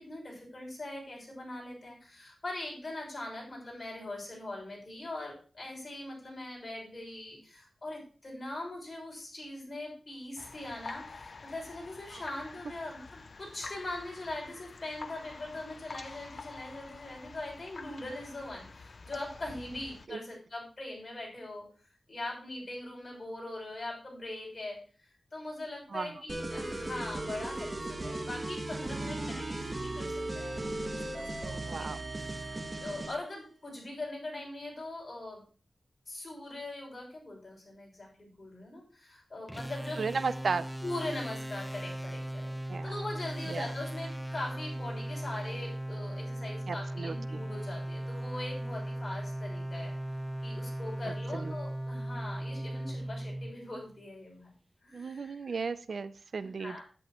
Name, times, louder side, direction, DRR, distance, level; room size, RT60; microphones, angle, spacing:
voice 1, 0.0-21.7 22.1-31.9 32.2-32.5 32.8-35.4 36.1-40.0 40.8-49.9 50.4-54.5 54.8-55.7 56.3-56.8, left 2 dB, 35° left, -2 dB, 6.2 m, -41 dB
sound 1, 10.4-20.1, left 4 dB, 55° left, 0.5 m, -47 dB
sound 2, 26.3-33.2, right 2 dB, 30° right, 1.3 m, -37 dB
voice 2, 31.7-32.0 40.0-40.7 42.7-42.9 43.5-43.7 46.7-47.4 51.3-51.5 54.9-56.8, right 4 dB, 70° right, 14 dB, 0.5 m, -35 dB
sound 3, 39.5-54.0, right 1 dB, ahead, 0.5 m, -38 dB
10.5 x 9.7 x 3.0 m, 0.39 s
wide cardioid pair, 100°, 0 cm